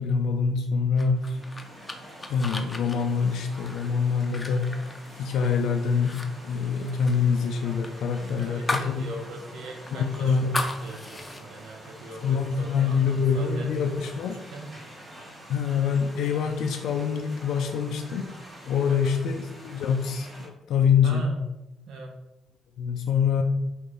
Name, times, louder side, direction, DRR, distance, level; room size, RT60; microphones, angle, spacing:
voice 1, 0.0-1.4 2.3-4.7 5.2-9.1 9.9-10.6 12.2-14.4 15.5-18.3 18.7-21.3 22.8-23.4, left 6 dB, 80° left, 3 dB, 0.3 m, -25 dB
sound 1, 1.0-5.6 5.9-6.3 6.5-9.0 9.3-9.4 9.9-11.4, left 2 dB, 15° left, 0.5 m, -35 dB
sound 2, 1.1-20.5, right 1 dB, 30° right, 1.3 m, -46 dB
voice 2, 8.2-14.1 14.5-14.8 18.9-19.2 21.0-21.4 21.9-22.1, right 2 dB, 80° right, 1 dB, 0.6 m, -40 dB
5.3 x 2.5 x 3.3 m, 0.99 s
cardioid pair, 90°, 0 cm